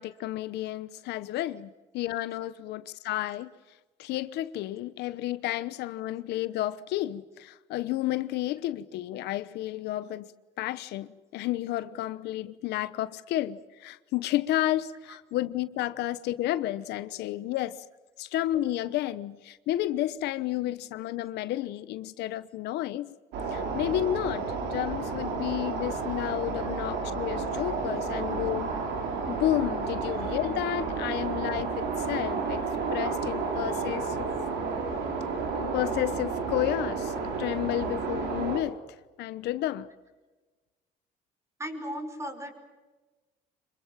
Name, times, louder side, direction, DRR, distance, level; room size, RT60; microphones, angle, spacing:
voice 1, 0.0-3.5 4.0-10.3 10.6-17.9 18.2-23.1 23.5-28.8 29.3-32.6 32.9-34.3 35.5-38.8 39.2-39.9, left 14 dB, 80° left, 1.0 m, -31 dB
sound 1, 23.3-38.6, right 4 dB, 85° right, 5.4 m, -31 dB
voice 2, 41.6-42.5, equal, 15° right, 5.4 m, -36 dB
26.0 x 23.5 x 7.5 m
cardioid pair, 110°, 17 cm